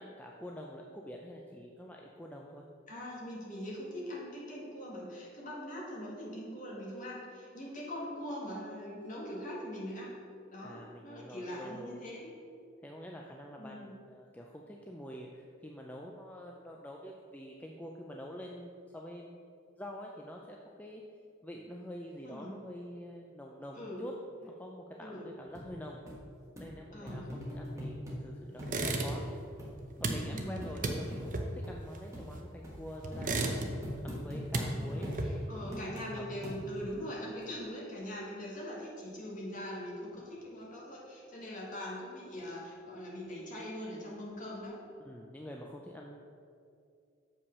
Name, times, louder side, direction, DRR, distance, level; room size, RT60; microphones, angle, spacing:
voice 1, 0.0-2.6 10.6-12.0 12.8-19.4 19.8-21.0 21.4-24.1 24.4-26.0 26.6-29.2 30.0-33.6 34.0-35.9 36.1-36.2 45.0-46.2, equal, 10° left, 0 dB, 0.4 m, -46 dB
voice 2, 2.9-10.2 10.5-12.3 13.6-14.0 22.2-22.6 23.7-24.0 25.0-25.3 26.9-27.9 30.2-30.6 34.7-44.8, equal, 40° left, -4 dB, 1.9 m, -42 dB
sound 1, 25.6-25.7 26.1-26.2 26.6-26.7 27.1-28.2 28.6-28.8 29.1-29.2 29.6-29.7 30.1-30.2 30.6-30.8 31.1-31.2 31.6-31.7 32.1-32.3 32.6-32.8 33.1-34.7 35.0-35.2 35.7-36.1 36.4-36.9 37.4-37.5, equal, 15° right, 1.3 m, -41 dB
sound 2, 28.6-29.4 29.7-32.6 33.0-34.0 34.3-35.6, right 2 dB, 40° right, 0.7 m, -35 dB
7.0 x 5.5 x 5.4 m, 2.4 s
head